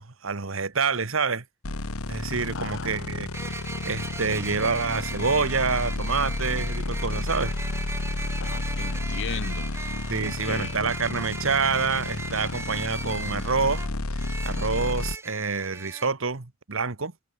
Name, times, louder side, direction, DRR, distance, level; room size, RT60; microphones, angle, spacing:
voice 1, 0.0-1.4 2.1-3.6 3.8-7.6 10.1-13.8 14.4-17.1, right 5 dB, 65° right, 1.4 m, -27 dB
sound 1, 1.6-15.2, left 2 dB, 85° left, 1.5 m, -31 dB
sound 2, 1.7-1.8 3.3-16.1, right 3 dB, 10° right, 0.8 m, -38 dB
voice 2, 2.5-3.1 8.4-9.7 10.2-10.7, left 6 dB, 60° left, 0.8 m, -37 dB
head